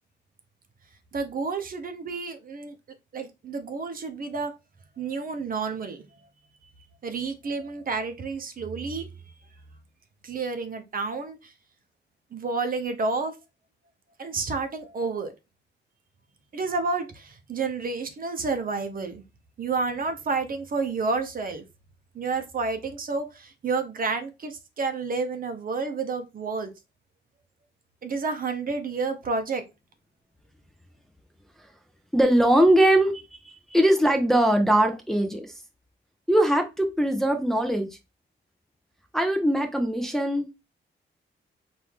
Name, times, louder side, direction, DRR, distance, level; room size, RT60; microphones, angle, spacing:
voice 1, 1.1-2.7 3.1-4.5 5.0-6.0 7.0-9.1 10.2-11.4 12.3-13.3 14.2-15.3 16.5-19.2 19.6-21.6 22.1-26.7 28.0-29.6, right 4 dB, 45° right, 0.8 m, -30 dB
voice 2, 32.1-35.5 36.3-37.9 39.1-40.5, right 1 dB, ahead, 0.6 m, -21 dB
4.6 x 2.6 x 3.5 m
wide cardioid pair, 130°, 20 cm